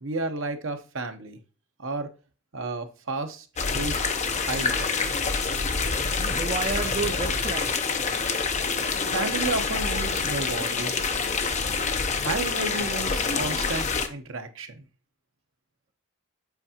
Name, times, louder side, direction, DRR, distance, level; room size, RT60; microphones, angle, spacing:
voice 1, 0.0-1.4 1.8-2.1 2.5-3.5 3.7-4.0 4.4-5.1 9.1-11.1 12.2-14.8, right 3 dB, 60° right, 0.8 m, -32 dB
sound 1, 3.6-14.1, left 4 dB, 30° left, 0.6 m, -27 dB
voice 2, 5.9-7.9, right 4 dB, 30° right, 0.4 m, -32 dB
8.0 x 4.6 x 2.8 m
head